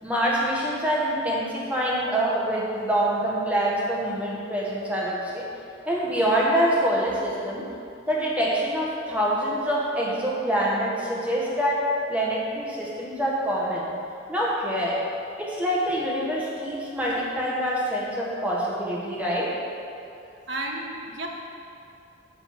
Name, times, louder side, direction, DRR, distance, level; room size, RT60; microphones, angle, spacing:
voice 1, 0.0-5.5 5.8-7.7 8.1-11.8 12.1-13.9 14.3-15.0 15.4-19.5, equal, 5° right, -5 dB, 1.5 m, -25 dB
voice 2, 20.3-21.3, right 2 dB, 70° right, 0 dB, 1.3 m, -33 dB
12.0 x 4.0 x 7.6 m, 2.6 s
head